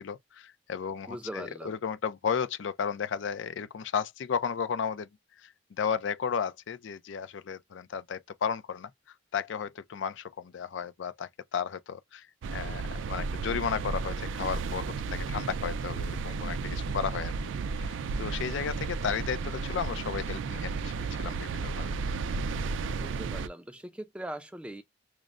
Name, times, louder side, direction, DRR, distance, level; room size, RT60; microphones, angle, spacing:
voice 1, 0.0-5.1 5.4-8.9 9.3-17.3 17.8-20.9 21.2-21.9, left 7 dB, 75° left, 0.4 m, -34 dB
voice 2, 1.1-1.8 23.0-24.8, right 1 dB, 5° right, 0.4 m, -40 dB
sound 1, 12.4-23.5, right 4 dB, 85° right, 0.3 m, -33 dB
6.2 x 2.1 x 2.4 m
head